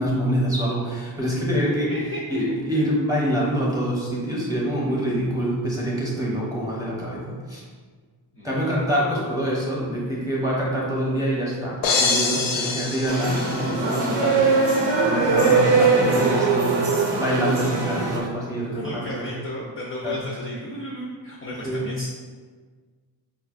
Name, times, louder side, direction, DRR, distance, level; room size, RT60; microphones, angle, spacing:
voice 1, 0.0-1.9 2.3-7.6 8.4-19.3 20.0-20.1 21.6-21.8, equal, 10° right, -5 dB, 0.8 m, -25 dB
voice 2, 1.9-2.2 2.5-2.8 8.3-8.6 16.1-16.6 18.7-22.1, equal, 30° left, -4 dB, 0.4 m, -34 dB
sound 1, 11.8-14.1, left 4 dB, 90° left, 0.6 m, -25 dB
sound 2, 13.1-18.2, right 4 dB, 70° right, 0.7 m, -21 dB
4.7 x 2.3 x 2.4 m, 1.5 s
wide cardioid pair, 140°, 45 cm